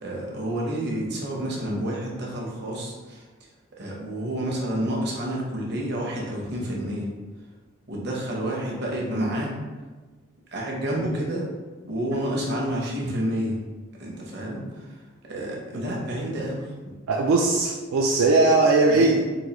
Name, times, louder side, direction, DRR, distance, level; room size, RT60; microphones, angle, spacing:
voice 1, 0.0-3.2 3.8-7.1 7.9-9.5 10.5-11.5 11.8-13.6 14.0-14.9 15.3-16.6 18.9-19.2, right 1 dB, 50° right, -3 dB, 0.7 m, -29 dB
voice 2, 17.1-19.2, right 3 dB, 75° right, -1 dB, 0.3 m, -19 dB
3.9 x 2.3 x 2.9 m, 1.3 s
head